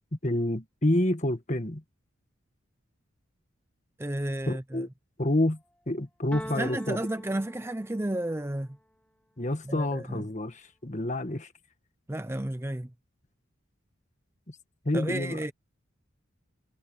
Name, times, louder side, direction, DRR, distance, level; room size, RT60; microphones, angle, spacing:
voice 1, 0.2-1.8 4.5-4.9 5.2-5.6 5.9-7.0 9.4-11.5 14.9-15.4, left 1 dB, 35° left, 1.6 m, -28 dB
voice 2, 4.0-4.9 6.4-8.8 9.6-10.3 12.1-12.9 14.9-15.5, right 1 dB, 10° right, 0.5 m, -32 dB
sound 1, 6.3-8.3, equal, 5° left, 3.9 m, -43 dB
head